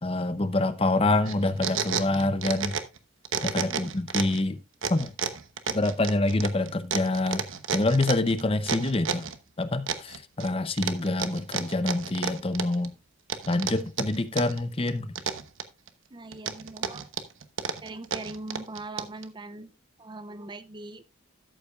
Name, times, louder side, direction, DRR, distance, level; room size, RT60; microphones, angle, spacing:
voice 1, 0.0-2.7 3.4-4.6 4.9-5.1 5.7-7.4 7.7-9.3 9.6-12.9 13.5-15.1, left 2 dB, 25° left, 0.6 m, -26 dB
sound 1, 1.3-3.0 3.2-4.4 4.8-9.4 9.9-10.5 10.8-12.9 13.3-14.6 14.9-15.9 16.3-19.2, right 6 dB, 65° right, 1.0 m, -31 dB
voice 2, 3.5-3.9 16.1-17.1 17.8-19.7 20.0-21.1, right 2 dB, 20° right, 0.5 m, -41 dB
12.5 x 8.3 x 2.4 m
head